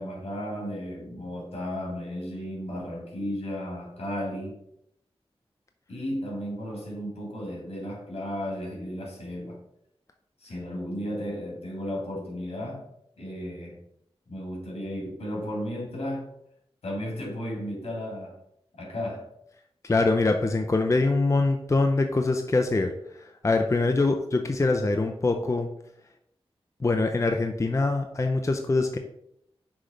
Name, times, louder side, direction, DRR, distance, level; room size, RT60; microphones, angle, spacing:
voice 1, 0.0-4.6 5.9-9.6 10.4-12.8 13.2-13.8 14.3-16.3 16.8-18.4 18.8-19.3, equal, 75° left, -2 dB, 2.4 m, -34 dB
voice 2, 19.8-22.9 23.2-25.7 26.8-29.0, left 3 dB, 30° left, 4 dB, 0.5 m, -24 dB
6.2 x 3.2 x 4.9 m, 0.75 s
wide cardioid pair, 85°, 10 cm